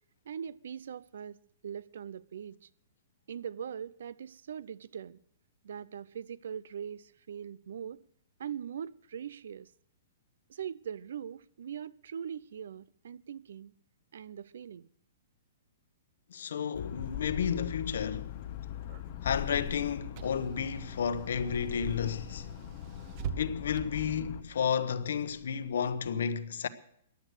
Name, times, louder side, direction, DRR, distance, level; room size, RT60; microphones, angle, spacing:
voice 1, 0.3-2.7 3.3-5.2 5.6-8.0 8.4-9.7 10.5-13.7 14.1-14.9, right 8 dB, 65° right, 0.5 m, -41 dB
voice 2, 16.3-18.3 19.2-22.5 23.4-26.7, left 7 dB, 70° left, 1.0 m, -32 dB
sound 1, 16.7-24.4, left 11 dB, 35° left, 0.9 m, -40 dB
Car / Engine, 17.8-26.1, right 7 dB, 30° right, 0.8 m, -47 dB
15.0 x 11.0 x 6.5 m
hypercardioid pair, 175°, 0 cm